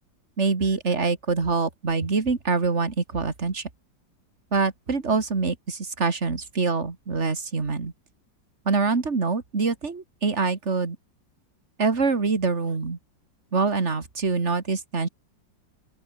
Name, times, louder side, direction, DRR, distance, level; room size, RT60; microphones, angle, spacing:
voice 1, 0.4-3.7 4.5-7.9 8.7-11.0 11.8-13.0 13.5-15.1, right 4 dB, 35° right, 2.7 m, -25 dB
open air
omnidirectional pair, 2.1 m